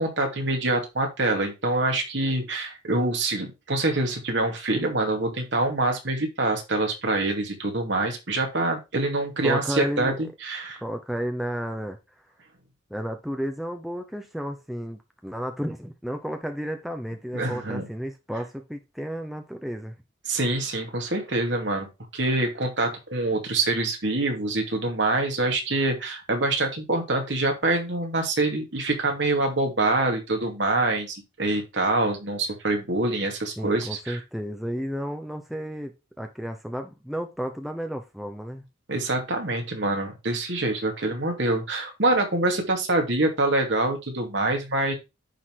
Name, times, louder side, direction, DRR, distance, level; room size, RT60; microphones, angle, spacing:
voice 1, 0.0-10.8 17.3-17.9 20.3-21.9 22.1-34.2 38.9-44.9, right 2 dB, 65° right, 3 dB, 2.5 m, -25 dB
voice 2, 9.4-10.3 10.8-12.0 12.9-19.9 33.6-38.6, equal, ahead, 4 dB, 0.8 m, -32 dB
10.0 x 4.0 x 4.8 m, 0.25 s
head